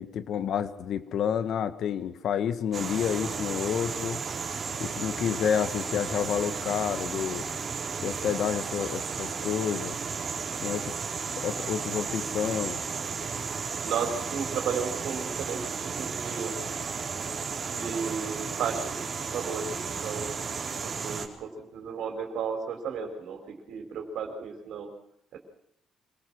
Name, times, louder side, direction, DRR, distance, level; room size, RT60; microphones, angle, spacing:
voice 1, 0.0-4.2 4.8-7.5 8.0-10.0 10.6-11.0 11.3-12.8, left 8 dB, 70° left, 12 dB, 1.6 m, -29 dB
sound 1, 2.7-21.3, right 5 dB, 45° right, 4.0 m, -34 dB
voice 2, 13.8-16.6 17.6-20.4 20.8-24.9 25.3-25.4, right 6 dB, 80° right, 4 dB, 4.5 m, -34 dB
26.5 x 18.5 x 6.3 m, 0.77 s
cardioid pair, 90°, 0 cm